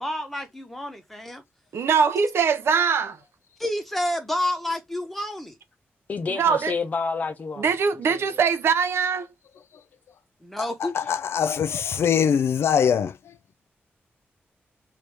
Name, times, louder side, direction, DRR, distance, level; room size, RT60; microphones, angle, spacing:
voice 1, 0.0-1.4 3.6-5.6 10.4-11.0, left 1 dB, 5° left, 0.9 m, -29 dB
voice 2, 1.7-3.2 6.3-6.7 7.6-9.3, right 6 dB, 75° right, 0.5 m, -22 dB
voice 3, 6.1-7.6 8.1-8.2, left 4 dB, 40° left, 0.7 m, -29 dB
voice 4, 10.8-13.3, left 7 dB, 85° left, 0.3 m, -23 dB
3.2 x 2.7 x 3.3 m
wide cardioid pair, 180°, 4 cm